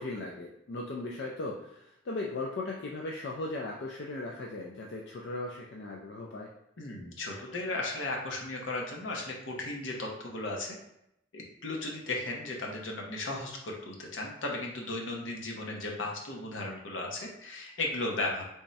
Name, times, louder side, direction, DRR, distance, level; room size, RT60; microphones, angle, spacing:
voice 1, 0.0-6.5, left 2 dB, 55° left, -1 dB, 0.4 m, -37 dB
voice 2, 6.8-10.7 11.3-18.5, left 2 dB, 75° left, -1 dB, 0.8 m, -35 dB
3.5 x 2.1 x 4.0 m, 0.81 s
head